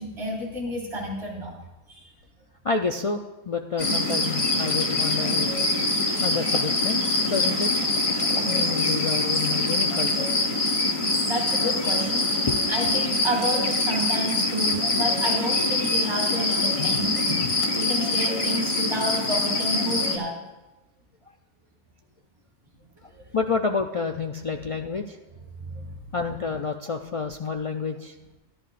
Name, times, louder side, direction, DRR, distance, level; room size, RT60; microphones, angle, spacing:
voice 1, 0.0-1.5 1.9-2.1 11.3-12.4 12.7-17.3 17.7-20.4 23.1-23.2 25.6-25.9, equal, 60° right, -7 dB, 2.6 m, -30 dB
voice 2, 2.6-5.5 6.2-7.7 8.3-10.3 12.4-12.6 16.8-17.0 17.3-17.5 23.0-25.2 26.1-28.1, left 5 dB, 60° left, 4 dB, 0.3 m, -29 dB
sound 1, 3.8-20.2, left 2 dB, 30° left, 1.1 m, -24 dB
Whispering, 8.3-10.3 10.9-13.0, right 1 dB, 40° right, 4.9 m, -46 dB
16.0 x 11.0 x 2.5 m, 1.0 s
omnidirectional pair, 1.2 m